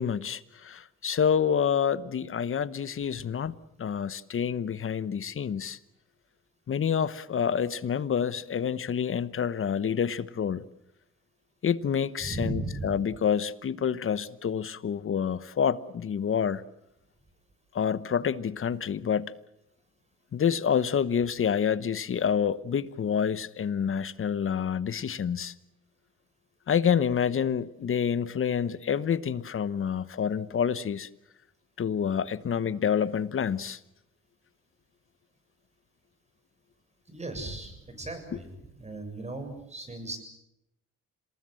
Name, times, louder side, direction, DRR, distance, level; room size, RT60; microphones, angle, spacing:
voice 1, 0.0-3.5 3.8-5.8 6.7-10.6 11.6-16.6 17.7-19.3 20.3-25.5 26.7-31.1 31.8-33.8, left 7 dB, 45° left, 1.1 m, -28 dB
voice 2, 12.2-13.0 37.1-40.2, right 2 dB, 20° right, 7.1 m, -37 dB
27.0 x 19.5 x 7.7 m
cardioid pair, 90°, 30 cm